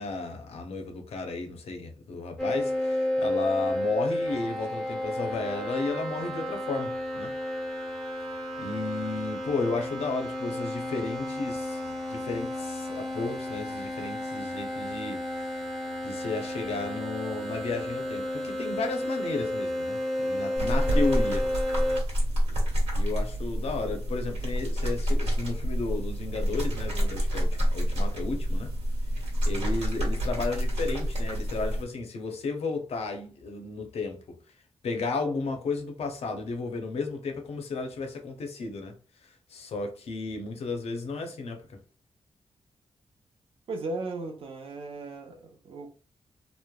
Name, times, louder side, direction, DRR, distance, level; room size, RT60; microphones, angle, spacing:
voice 1, 0.0-7.3 8.6-15.5 16.0-21.5 22.9-28.7 29.5-34.2 34.8-39.0 39.5-41.8, left 3 dB, 75° left, 0.6 m, -33 dB
sound 1, 2.4-22.0, left 1 dB, 5° left, 0.7 m, -32 dB
sound 2, 20.6-31.8, equal, 75° right, 1.3 m, -28 dB
voice 2, 43.7-45.9, right 2 dB, 60° right, 0.7 m, -36 dB
3.0 x 2.0 x 2.3 m
wide cardioid pair, 150°, 11 cm